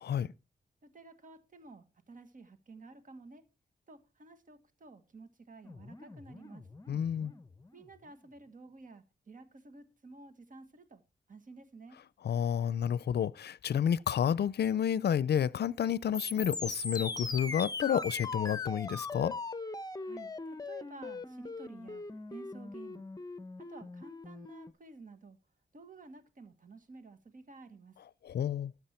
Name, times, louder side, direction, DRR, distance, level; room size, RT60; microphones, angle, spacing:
voice 1, 0.0-0.3 6.9-7.3 12.2-19.3 28.2-28.7, left 9 dB, 70° left, 0.5 m, -30 dB
voice 2, 0.8-3.5 3.9-6.7 7.7-11.0 11.3-12.0 20.0-23.0 23.6-25.4 25.7-28.0, right 3 dB, 50° right, 1.6 m, -52 dB
sound 1, 5.6-7.9 16.1-24.7, left 3 dB, 20° left, 0.8 m, -40 dB
12.5 x 8.0 x 4.4 m
wide cardioid pair, 105°, 18 cm